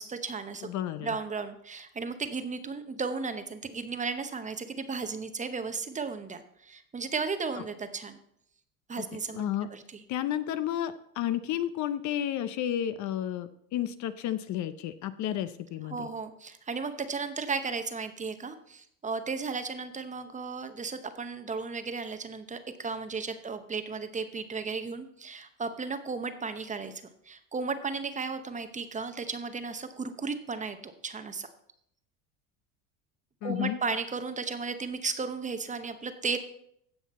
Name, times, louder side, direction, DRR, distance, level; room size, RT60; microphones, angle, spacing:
voice 1, 0.0-0.7 1.0-8.2 8.9-9.4 9.7-10.0 15.9-31.5 33.4-36.4, right 4 dB, 20° right, 9 dB, 0.8 m, -35 dB
voice 2, 0.6-1.1 9.0-9.1 9.3-9.7 10.1-16.1 33.4-33.8, left 11 dB, 45° left, 12 dB, 0.6 m, -32 dB
16.0 x 5.8 x 4.2 m, 0.72 s
supercardioid pair, 115°, 41 cm